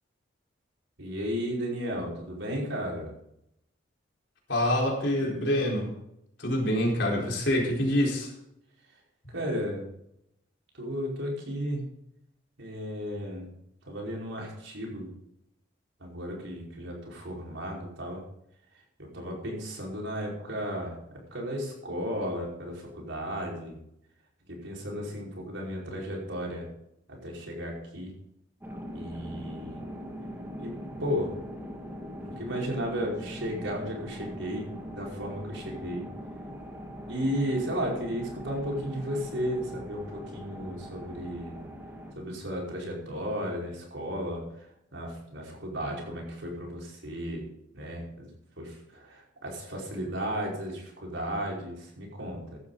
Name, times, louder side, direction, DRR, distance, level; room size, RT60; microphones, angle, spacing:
voice 1, 1.0-3.1 9.3-9.8 10.7-11.8 12.6-13.5 13.9-15.1 16.0-18.2 19.0-21.0 21.3-23.7 24.5-26.7 27.1-28.1 28.9-29.8 30.6-31.3 32.2-36.1 37.1-41.7 42.1-44.4 44.9-47.5 47.7-48.3 48.6-52.6, equal, 75° right, -2 dB, 5.1 m, -34 dB
voice 2, 4.5-5.9 6.4-8.3, left 1 dB, 65° left, -2 dB, 4.4 m, -26 dB
sound 1, 28.6-42.1, equal, 10° right, 2.1 m, -41 dB
16.0 x 12.0 x 4.1 m, 0.78 s
head